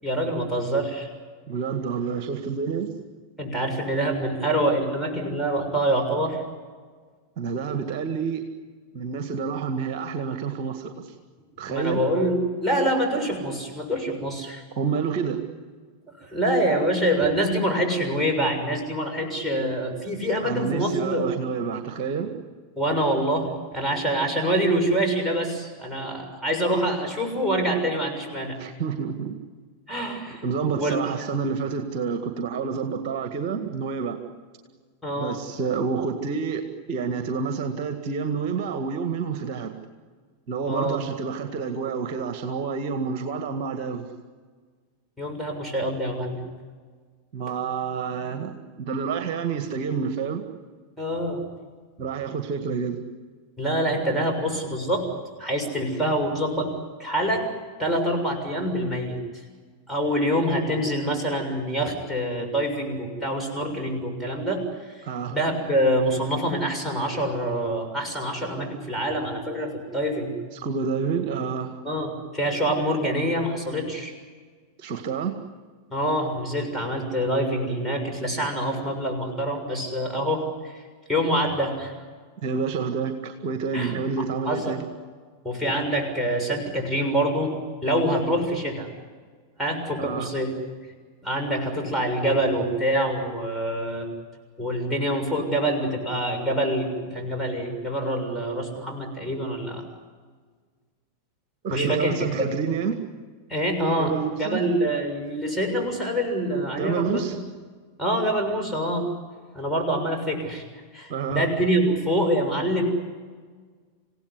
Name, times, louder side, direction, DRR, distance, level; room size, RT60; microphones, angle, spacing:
voice 1, 0.0-1.1 3.4-6.4 11.6-14.6 16.2-21.3 22.8-28.6 29.9-30.4 30.7-31.0 35.0-35.4 40.6-41.0 45.2-46.4 51.0-51.4 53.6-55.1 55.4-56.7 57.0-57.5 57.8-59.2 59.9-65.0 65.3-70.3 71.8-74.1 75.9-80.8 81.1-81.9 83.7-84.8 85.4-87.6 87.8-88.9 89.6-90.5 91.2-94.1 94.6-99.8 101.7-102.5 103.5-107.2 108.0-109.1 109.5-110.6 110.9-112.8, right 1 dB, ahead, 0 dB, 6.7 m, -25 dB
voice 2, 1.5-3.0 7.4-8.5 8.9-11.1 11.6-12.0 14.8-15.4 20.4-22.5 28.6-29.4 30.4-34.2 35.1-39.7 40.5-44.1 47.3-50.4 52.0-53.0 65.0-65.4 70.5-71.8 74.8-75.3 82.4-84.8 90.0-90.3 101.6-103.0 104.0-104.6 106.7-107.4 111.1-111.5, right 5 dB, 40° right, 7 dB, 1.9 m, -28 dB
28.0 x 17.0 x 9.9 m, 1.5 s
figure-of-eight pair, 90°, 0 cm